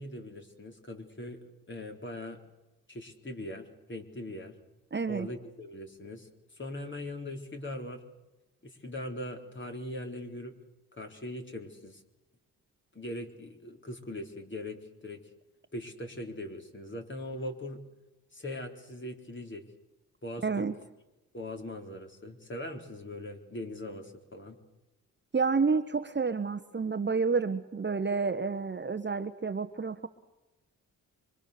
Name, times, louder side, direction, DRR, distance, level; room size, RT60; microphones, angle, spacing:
voice 1, 0.0-1.4 1.7-2.4 2.9-4.6 5.1-6.3 6.6-8.0 8.6-10.6 11.0-12.0 12.9-15.2 15.7-17.8 18.3-19.6 20.2-20.7 21.3-24.6, left 1 dB, 30° left, 3 dB, 4.1 m, -40 dB
voice 2, 4.9-5.3 20.4-20.8 25.3-30.1, right 4 dB, 30° right, 10 dB, 1.3 m, -29 dB
25.0 x 24.5 x 6.8 m, 1.0 s
supercardioid pair, 55°, 37 cm